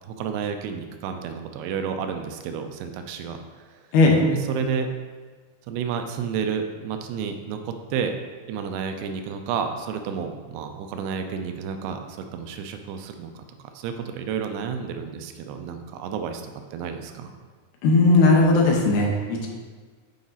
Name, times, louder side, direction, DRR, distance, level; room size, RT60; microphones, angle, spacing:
voice 1, 0.0-3.4 4.3-4.9 5.7-8.1 8.5-13.4 13.8-16.4 16.7-17.3, right 6 dB, 80° right, 6 dB, 2.6 m, -31 dB
voice 2, 17.8-19.5, left 2 dB, 70° left, 0 dB, 2.7 m, -17 dB
8.6 x 5.1 x 4.0 m, 1.5 s
omnidirectional pair, 4.9 m